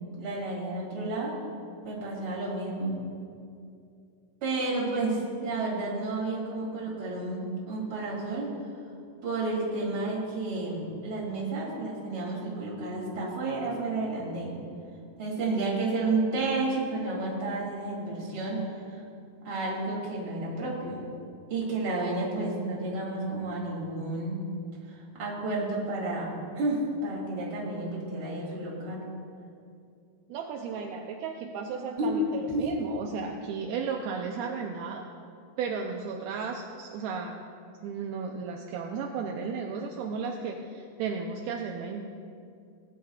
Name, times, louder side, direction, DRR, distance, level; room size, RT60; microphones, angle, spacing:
voice 1, 0.2-1.4 1.8-3.0 4.4-8.5 9.2-14.6 15.2-19.0 19.4-21.0 21.5-24.4 24.9-26.3 26.5-29.0 32.0-32.2 32.5-32.6, right 2 dB, 40° right, -4 dB, 2.9 m, -31 dB
voice 2, 30.3-35.0 35.6-37.4 37.8-42.0, right 5 dB, 80° right, 2 dB, 2.4 m, -34 dB
18.5 x 10.5 x 2.3 m, 2.5 s
omnidirectional pair, 4.6 m